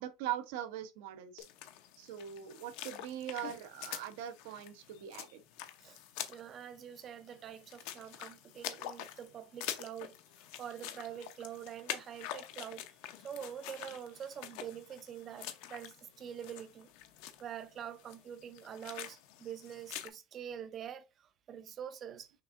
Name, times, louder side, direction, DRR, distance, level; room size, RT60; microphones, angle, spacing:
voice 1, 0.0-1.5 2.0-5.4, right 11 dB, 65° right, 0.7 m, -41 dB
sound 1, 1.4-20.1, left 12 dB, 55° left, 0.6 m, -46 dB
voice 2, 6.3-12.9 13.2-16.9 17.4-22.3, right 9 dB, 25° right, 0.4 m, -45 dB
5.9 x 3.5 x 2.5 m
cardioid pair, 175°, 0 cm